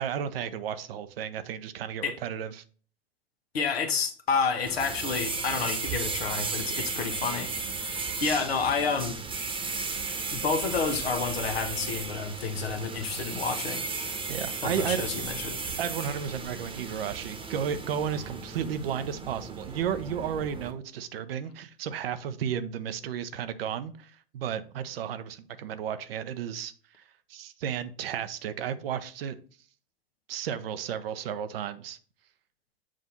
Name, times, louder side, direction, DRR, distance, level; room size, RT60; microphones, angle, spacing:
voice 1, 0.0-2.6 14.3-15.0 15.8-26.7 27.3-29.3 30.3-32.0, right 8 dB, 70° right, 0.7 m, -33 dB
voice 2, 3.5-7.5 7.7-9.2 10.3-13.8 14.6-15.7, left 5 dB, 80° left, 1.0 m, -30 dB
sound 1, 4.7-20.7, right 4 dB, 15° right, 1.0 m, -35 dB
7.4 x 2.6 x 5.7 m
hypercardioid pair, 95°, 30 cm